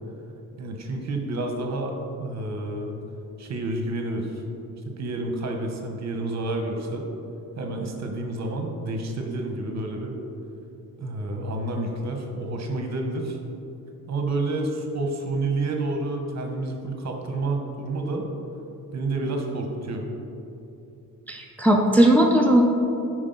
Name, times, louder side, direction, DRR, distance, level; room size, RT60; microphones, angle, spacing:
voice 1, 0.6-2.9 3.4-4.4 4.8-7.1 7.6-10.2 11.0-13.4 14.1-18.3 18.9-20.0, right 2 dB, 55° right, 3 dB, 1.0 m, -29 dB
voice 2, 21.3-22.6, right 1 dB, 5° left, 0 dB, 0.5 m, -18 dB
9.6 x 4.7 x 3.9 m, 2.7 s
wide cardioid pair, 135°, 33 cm